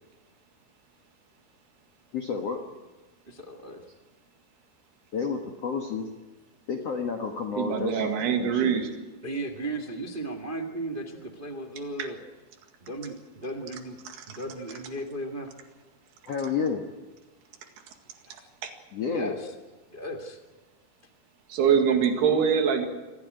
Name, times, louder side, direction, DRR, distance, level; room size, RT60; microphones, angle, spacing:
voice 1, 2.1-2.6 5.1-6.1 6.7-8.8 16.3-16.8 18.9-19.3 22.3-22.4, left 5 dB, 55° left, 2 dB, 1.9 m, -30 dB
voice 2, 3.3-3.8 9.2-12.2 12.8-14.0 14.3-15.5 18.2-18.4 19.1-19.5 19.9-20.4, right 1 dB, 40° right, 3 dB, 0.7 m, -36 dB
voice 3, 7.6-8.9 14.1-14.2 18.6-18.7 21.5-22.9, right 7 dB, 80° right, 5 dB, 4.1 m, -24 dB
24.5 x 15.5 x 9.3 m, 1.2 s
omnidirectional pair, 4.6 m